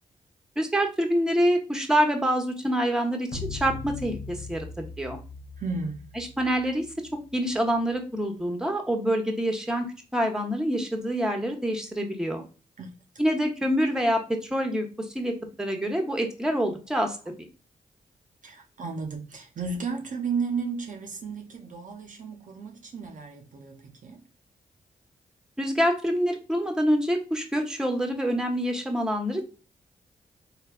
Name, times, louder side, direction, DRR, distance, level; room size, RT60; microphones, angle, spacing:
voice 1, 0.6-5.2 6.2-6.8 7.3-9.9 10.1-12.4 13.2-14.9 15.1-17.2 25.6-29.5, equal, 5° right, 0.8 m, -26 dB
sound 1, 3.3-7.8, left 5 dB, 70° left, 0.7 m, -40 dB
voice 2, 5.6-6.0 12.8-12.9 18.4-24.2, right 4 dB, 55° right, 0.5 m, -33 dB
3.2 x 2.2 x 2.3 m
supercardioid pair, 40°, 16 cm